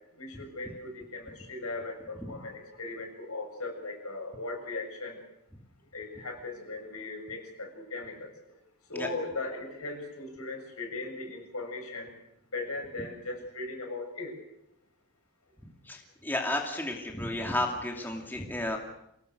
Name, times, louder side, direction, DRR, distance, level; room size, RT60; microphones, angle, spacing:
voice 1, 0.1-5.2 5.9-8.3 8.9-12.1 12.5-14.3, left 2 dB, 85° left, 2 dB, 7.4 m, -38 dB
voice 2, 16.2-18.8, left 1 dB, 10° left, 1 dB, 2.6 m, -32 dB
27.0 x 18.5 x 6.7 m, 0.79 s
head